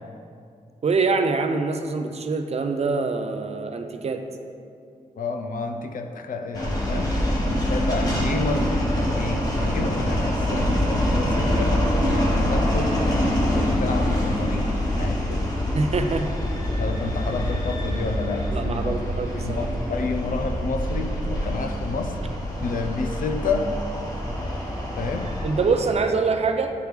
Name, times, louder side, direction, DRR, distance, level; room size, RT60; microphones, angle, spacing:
voice 1, 0.8-4.2 15.7-16.3 18.5-19.7 25.4-26.7, right 4 dB, 50° right, 6 dB, 0.4 m, -24 dB
voice 2, 5.2-7.1 7.5-13.0 13.3-15.5 16.8-19.0 19.3-22.2 22.6-23.7 25.0-25.3, left 3 dB, 80° left, 6 dB, 0.5 m, -30 dB
sound 1, 6.5-26.0, equal, 30° left, 1.0 m, -25 dB
9.1 x 3.2 x 3.4 m, 2.4 s
wide cardioid pair, 105°, 14 cm